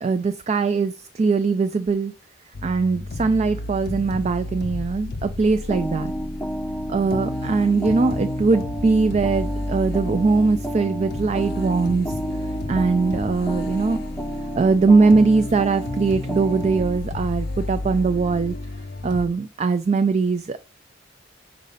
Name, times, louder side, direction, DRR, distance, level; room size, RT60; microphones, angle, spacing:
voice 1, 0.0-2.1 2.6-6.1 6.9-12.1 12.7-14.0 14.6-18.5 19.0-20.6, right 4 dB, 35° right, 10 dB, 0.3 m, -21 dB
sound 1, 2.5-19.3, left 2 dB, 55° left, 0.5 m, -32 dB
sound 2, 5.7-17.0, right 1 dB, 5° left, 0.6 m, -31 dB
5.2 x 4.1 x 5.5 m, 0.33 s
head